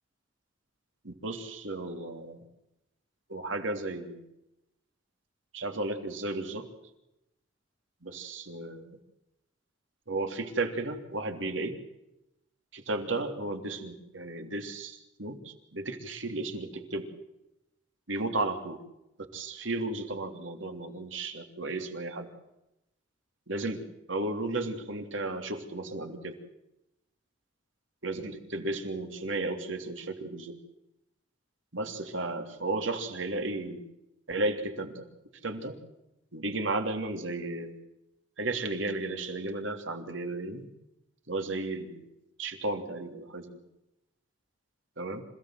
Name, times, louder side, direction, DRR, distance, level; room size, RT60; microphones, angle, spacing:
voice 1, 1.0-2.4 3.3-4.2 5.5-6.7 8.0-9.0 10.1-11.8 12.7-17.1 18.1-18.8 19.3-22.3 23.5-23.8 24.1-26.3 28.0-30.5 31.7-33.8 34.3-35.0 35.4-35.8 36.3-37.7 38.4-40.7 41.3-42.0 42.4-43.5 45.0-45.2, right 2 dB, 80° right, 5 dB, 3.2 m, -34 dB
27.0 x 17.0 x 7.9 m, 0.89 s
head